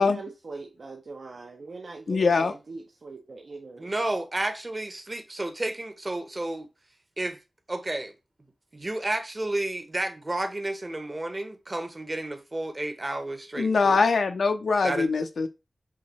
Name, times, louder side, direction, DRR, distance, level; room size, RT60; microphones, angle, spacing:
voice 1, 0.0-3.9, right 3 dB, 65° right, 0.5 m, -41 dB
voice 2, 2.1-2.5 13.6-15.5, left 4 dB, 90° left, 0.5 m, -23 dB
voice 3, 3.8-6.7 7.2-7.4 7.7-8.1 8.7-14.0 14.8-15.1, right 2 dB, 30° right, 0.8 m, -31 dB
5.6 x 2.7 x 3.0 m
wide cardioid pair, 90°, 0 cm